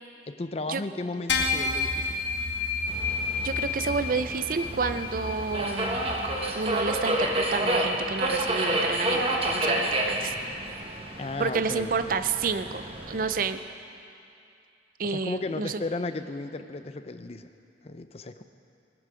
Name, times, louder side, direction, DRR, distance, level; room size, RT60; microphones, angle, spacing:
voice 1, 0.3-2.2 11.2-11.9 15.0-17.5 17.8-18.4, left 2 dB, 35° left, 9 dB, 0.5 m, -34 dB
sound 1, 1.3-6.9, left 4 dB, 80° left, 1.3 m, -31 dB
Subway metro underground, 2.9-13.4, right 1 dB, 30° right, 1.2 m, -30 dB
voice 2, 3.4-6.0 6.5-10.3 11.4-13.6 15.0-15.8, right 4 dB, 50° right, 11 dB, 0.5 m, -30 dB
17.0 x 12.5 x 5.0 m, 2.5 s
head